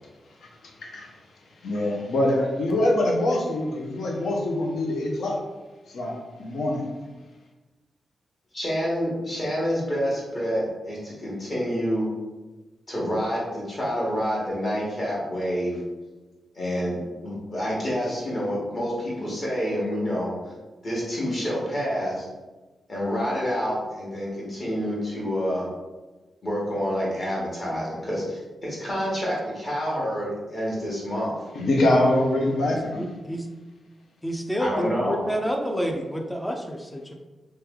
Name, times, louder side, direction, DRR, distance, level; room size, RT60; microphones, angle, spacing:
voice 1, 0.4-1.1 1.6-5.4 5.9-6.9 31.5-33.1, left 1 dB, 65° left, 0 dB, 0.7 m, -24 dB
voice 2, 8.5-12.1 12.9-15.8 16.5-20.5 20.8-22.2 22.9-25.7 26.4-31.4 34.6-35.2, equal, 30° left, -5 dB, 1.2 m, -28 dB
voice 3, 33.0-33.5 34.2-37.1, equal, 5° left, 3 dB, 0.4 m, -28 dB
3.2 x 3.0 x 3.5 m, 1.2 s
wide cardioid pair, 175°, 0 cm